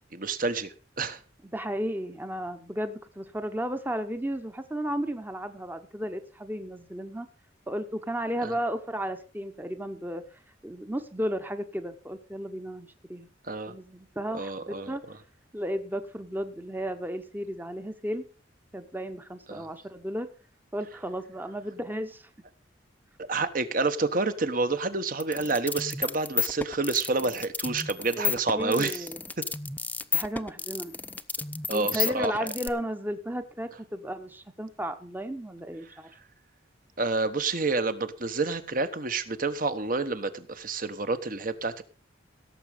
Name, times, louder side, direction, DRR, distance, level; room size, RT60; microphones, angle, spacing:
voice 1, 0.1-1.2 8.4-8.5 13.5-13.7 14.3-14.9 19.5-19.7 23.2-29.1 29.4-29.5 31.7-32.5 37.0-41.8, right 3 dB, 45° right, 11 dB, 1.2 m, -29 dB
voice 2, 1.5-7.3 7.7-10.2 10.6-13.3 13.7-15.0 15.5-18.2 18.7-20.3 20.7-22.3 28.2-29.2 30.1-30.9 31.7-36.1, equal, 10° right, 9 dB, 0.9 m, -34 dB
sound 1, 25.2-32.7, left 5 dB, 10° left, 0.5 m, -31 dB
17.0 x 7.5 x 5.1 m, 0.35 s
head